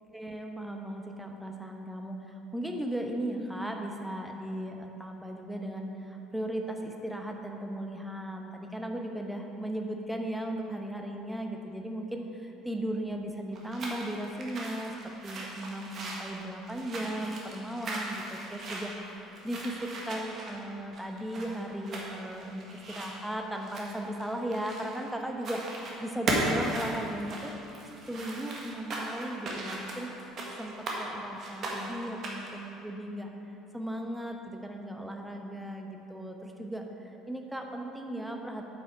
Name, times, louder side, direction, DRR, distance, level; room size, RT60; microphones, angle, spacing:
voice 1, 0.1-25.6 26.0-27.5 28.1-30.1 30.6-33.3 33.7-38.7, right 1 dB, 5° right, 2 dB, 1.0 m, -37 dB
sound 1, 13.5-25.1 25.4-26.0 26.3-31.0 31.4-32.6, right 2 dB, 40° right, 1.6 m, -37 dB
8.8 x 7.6 x 4.6 m, 3.0 s
figure-of-eight pair, 60°, 0 cm